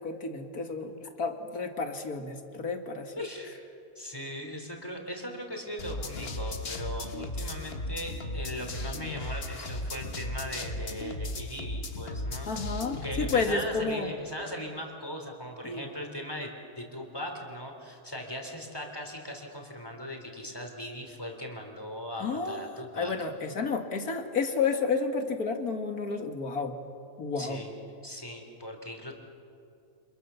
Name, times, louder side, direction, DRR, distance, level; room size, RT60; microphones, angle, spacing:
voice 1, 0.0-3.1 12.5-14.1 15.6-15.9 22.2-22.7 22.9-26.8 27.2-27.6, left 4 dB, 75° left, 5 dB, 2.5 m, -31 dB
voice 2, 3.2-3.6 4.0-12.5 13.0-16.5 16.8-23.1 27.4-27.7 28.0-29.1, equal, 15° left, 2 dB, 3.6 m, -39 dB
sound 1, 5.8-13.5, left 1 dB, 40° left, 1.6 m, -36 dB
30.0 x 26.5 x 7.1 m, 2.6 s
omnidirectional pair, 1.6 m